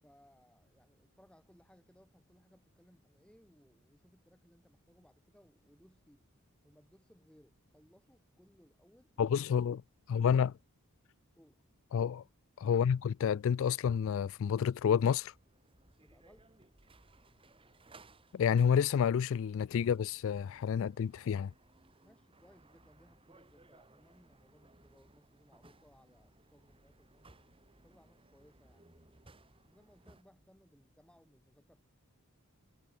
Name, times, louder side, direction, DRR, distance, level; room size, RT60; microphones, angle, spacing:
voice 1, 0.0-6.3 6.6-9.6 11.3-11.6 16.0-16.5 22.0-27.3 27.8-29.4 29.6-31.8, equal, 5° left, 6.2 m, -65 dB
voice 2, 9.2-9.8 10.1-10.5 11.9-12.2 12.6-15.3 18.3-21.5, left 7 dB, 60° left, 0.3 m, -29 dB
sound 1, 14.9-30.2, right 2 dB, 25° right, 2.0 m, -63 dB
head